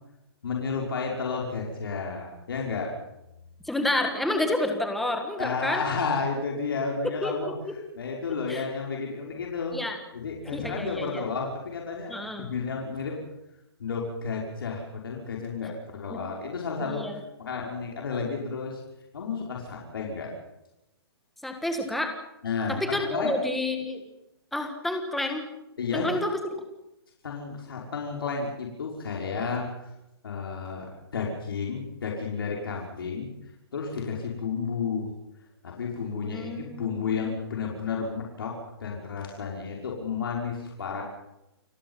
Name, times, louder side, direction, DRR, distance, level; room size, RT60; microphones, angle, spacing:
voice 1, 0.4-3.0 5.4-7.5 8.0-9.8 10.1-13.2 13.8-18.8 19.1-20.3 22.4-23.4 25.8-26.1 27.2-29.9 30.2-33.3 33.7-35.1 35.6-41.0, left 5 dB, 60° left, -1 dB, 5.8 m, -32 dB
voice 2, 3.7-5.8 7.2-7.3 8.5-8.6 9.7-10.0 10.5-11.2 12.1-12.5 16.1-16.2 16.8-17.2 21.4-22.1 22.7-24.0 24.5-25.5 25.9-26.3 36.2-37.4, left 1 dB, ahead, 5 dB, 1.6 m, -29 dB
29.5 x 19.5 x 5.7 m, 0.90 s
hypercardioid pair, 180°, 13 cm